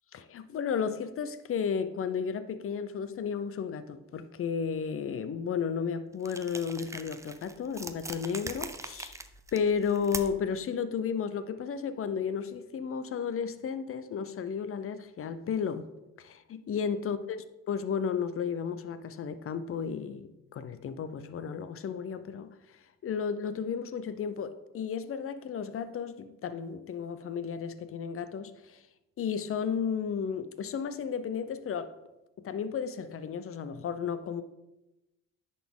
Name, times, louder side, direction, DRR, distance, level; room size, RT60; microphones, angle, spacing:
voice 1, 0.1-9.2 9.5-15.9 16.2-17.2 17.7-22.5 23.0-28.8 29.2-31.9 32.4-34.4, left 6 dB, 45° left, 0.6 m, -33 dB
sound 1, 6.2-10.5, right 2 dB, 10° right, 0.4 m, -42 dB
10.5 x 4.2 x 3.7 m
cardioid pair, 90°, 30 cm